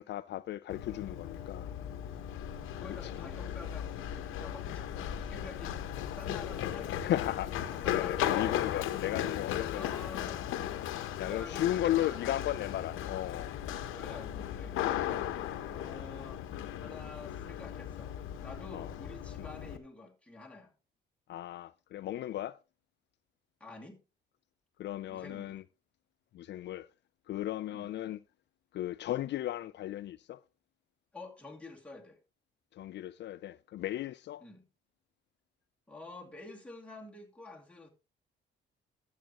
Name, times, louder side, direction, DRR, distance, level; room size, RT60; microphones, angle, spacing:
voice 1, 0.0-1.7 3.2-3.3 7.0-9.9 11.2-13.5 18.7-18.9 21.3-22.6 24.8-25.6 26.3-26.9 27.3-28.2 28.7-30.4 32.7-34.4, left 13 dB, 65° left, 0.4 m, -35 dB
Run, 0.7-19.8, left 11 dB, 90° left, 0.9 m, -37 dB
voice 2, 2.8-5.8 6.2-7.2 7.7-8.5 9.7-10.9 11.2-12.5 13.9-15.3 15.6-16.4 16.8-18.1 18.4-20.7 23.6-24.0 25.1-25.6 27.7-27.9 31.1-32.2 34.4-34.6 35.9-37.9, left 3 dB, 5° left, 2.5 m, -49 dB
13.0 x 7.5 x 2.9 m
cardioid pair, 90°, 20 cm